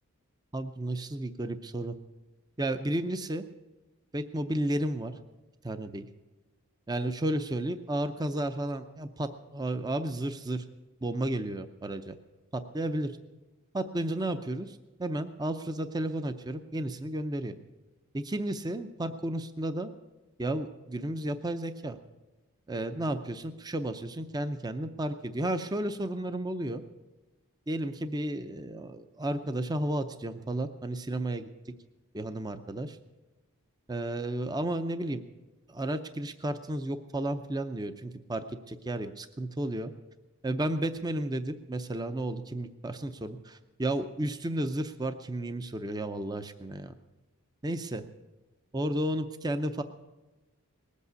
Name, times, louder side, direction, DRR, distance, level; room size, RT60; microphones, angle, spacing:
voice 1, 0.5-1.9 2.6-3.4 4.1-5.1 5.6-6.1 6.9-10.6 11.0-12.2 12.5-13.1 13.7-17.6 18.1-19.9 20.4-22.0 22.7-26.8 27.7-31.5 32.1-33.0 33.9-35.2 35.7-39.9 40.4-46.9 47.6-48.0 48.7-49.8, right 1 dB, 15° right, 10 dB, 0.5 m, -32 dB
19.5 x 8.3 x 8.1 m, 1.1 s
head